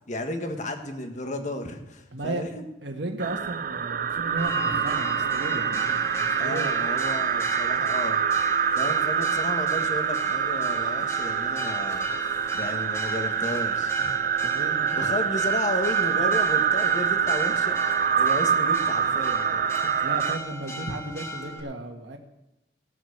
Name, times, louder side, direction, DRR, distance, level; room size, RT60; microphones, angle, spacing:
voice 1, 0.1-2.6 6.4-8.2 8.7-12.1 12.5-14.2 14.9-17.8 18.2-19.9, left 1 dB, 45° left, 5 dB, 1.6 m, -33 dB
voice 2, 2.1-2.4 2.8-6.7 14.4-15.0 20.0-22.2, right 2 dB, 75° right, 3 dB, 1.5 m, -34 dB
sound 1, 3.2-20.4, right 7 dB, 50° right, 0.6 m, -25 dB
Church bell, 4.4-21.6, right 1 dB, 15° left, 2.3 m, -37 dB
17.5 x 7.6 x 6.6 m, 0.90 s
head